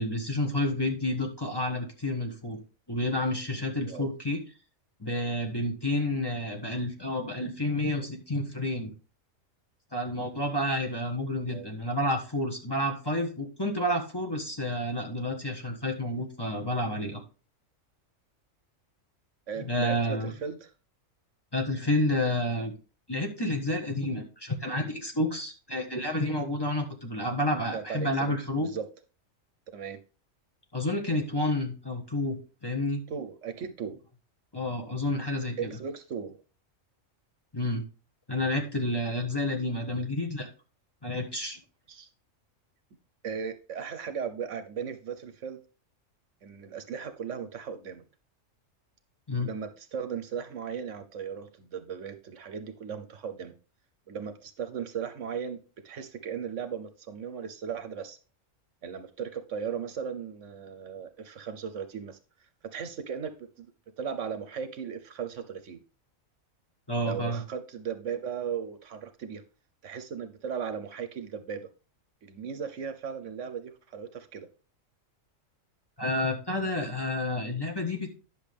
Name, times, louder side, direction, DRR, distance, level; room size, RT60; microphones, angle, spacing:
voice 1, 0.0-2.6 2.9-4.4 5.0-8.9 9.9-17.2 19.6-20.3 21.5-22.7 23.1-28.7 30.7-33.0 34.5-35.7 37.5-37.8 38.3-40.5 41.0-41.6 49.3-49.5 66.9-67.4 76.0-78.1, left 1 dB, 20° left, 2 dB, 1.4 m, -30 dB
voice 2, 19.5-20.7 27.7-28.8 29.7-30.0 33.1-34.0 35.6-36.4 41.9-42.1 43.2-45.6 46.4-48.0 49.4-53.6 54.1-55.6 55.8-58.2 58.8-62.2 62.7-63.7 64.0-65.8 67.0-69.4 69.8-71.7 72.2-74.5, right 7 dB, 65° right, 9 dB, 1.1 m, -37 dB
10.0 x 6.4 x 3.5 m, 0.35 s
omnidirectional pair, 1.4 m